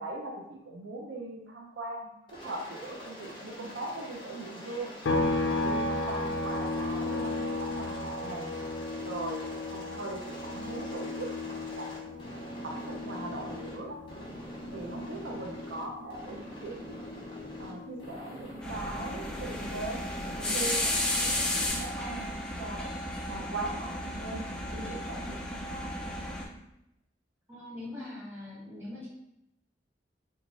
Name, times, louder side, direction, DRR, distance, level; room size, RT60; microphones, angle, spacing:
voice 1, 0.0-4.9 5.6-8.5 9.1-9.4 9.7-12.2 12.6-14.0 14.7-17.0 17.6-23.0 23.3-25.9, right 2 dB, 80° right, 0 dB, 0.5 m, -40 dB
Aircraft, 2.3-13.8 14.1-15.8 16.1-17.7 18.0-19.8 20.1-21.7, left 1 dB, 25° left, 0.7 m, -45 dB
sound 1, 5.0-18.6 18.9-21.1, left 2 dB, 70° left, 0.4 m, -35 dB
sound 2, 18.6-26.4, left 1 dB, 5° left, 0.4 m, -33 dB
voice 2, 27.5-29.1, left 2 dB, 15° right, -9 dB, 1.3 m, -42 dB
3.1 x 2.3 x 3.9 m, 0.85 s
head